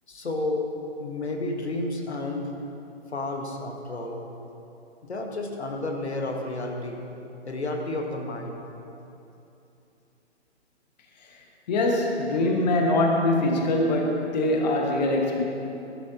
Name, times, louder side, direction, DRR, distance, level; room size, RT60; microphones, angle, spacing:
voice 1, 0.1-0.7 1.0-2.5 3.1-4.2 5.0-7.0 7.4-8.7, left 2 dB, 70° left, 2 dB, 1.4 m, -31 dB
voice 2, 11.7-15.4, left 2 dB, 40° left, 1 dB, 1.3 m, -23 dB
16.0 x 11.5 x 2.7 m, 2.8 s
figure-of-eight pair, 130°, 34 cm